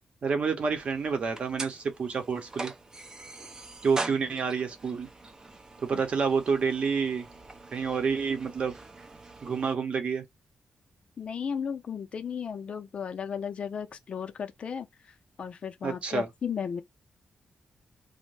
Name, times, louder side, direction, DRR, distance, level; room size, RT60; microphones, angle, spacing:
voice 1, 0.2-2.7 3.8-5.1 5.8-7.2 7.7-8.7 9.4-10.2 15.8-16.3, right 5 dB, 50° right, 0.8 m, -28 dB
sound 1, 0.6-9.8, right 2 dB, 25° right, 0.4 m, -43 dB
voice 2, 11.2-16.8, left 7 dB, 50° left, 0.5 m, -35 dB
2.6 x 2.1 x 3.2 m
wide cardioid pair, 135°, 3 cm